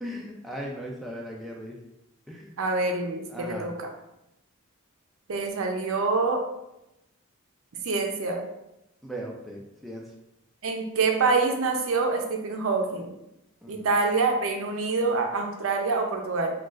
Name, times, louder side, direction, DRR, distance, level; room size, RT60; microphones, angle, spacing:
voice 1, 0.0-1.7 2.3-2.5 3.3-3.7 9.0-10.0 13.6-13.9, equal, ahead, -2 dB, 0.3 m, -38 dB
voice 2, 2.6-3.9 5.3-6.4 7.8-8.4 10.6-13.1 13.7-16.5, right 3 dB, 70° right, 3 dB, 0.5 m, -26 dB
3.8 x 2.3 x 2.4 m, 0.89 s
head